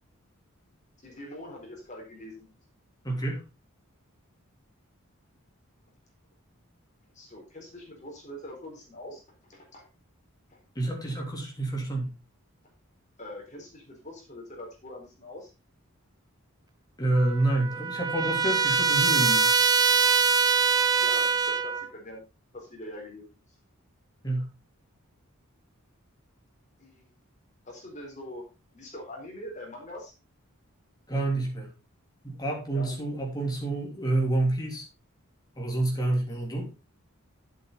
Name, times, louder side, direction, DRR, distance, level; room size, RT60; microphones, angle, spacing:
voice 1, 1.0-2.5 7.1-9.8 10.5-10.6 13.2-15.5 21.0-22.2 22.5-23.3 26.8-27.1 27.7-28.4 28.7-30.1 32.7-33.2, left 1 dB, 30° left, 4.1 m, -43 dB
voice 2, 3.0-3.4 10.7-12.1 17.0-19.5 24.2-24.5 31.1-31.7 32.2-34.8 35.6-36.7, right 2 dB, 15° left, 3.2 m, -28 dB
Trumpet, 17.1-21.9, right 5 dB, 15° right, 0.5 m, -23 dB
10.5 x 7.8 x 4.0 m
head